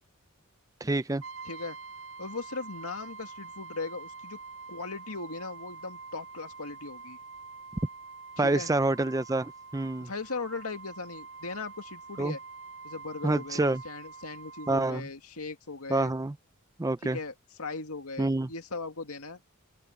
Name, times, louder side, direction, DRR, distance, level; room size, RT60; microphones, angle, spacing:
voice 1, 0.8-1.2 8.4-10.1 12.2-12.3 13.2-13.8 14.7-15.1 15.9-16.3 16.8-17.2 18.2-18.5, right 2 dB, 15° right, 0.5 m, -27 dB
Brass instrument, 1.2-14.8, right 4 dB, 75° right, 2.3 m, -46 dB
voice 2, 1.4-1.8 2.2-4.4 4.7-7.2 8.4-8.7 10.0-12.4 12.8-16.1 17.0-19.4, left 3 dB, 85° left, 2.2 m, -38 dB
open air
head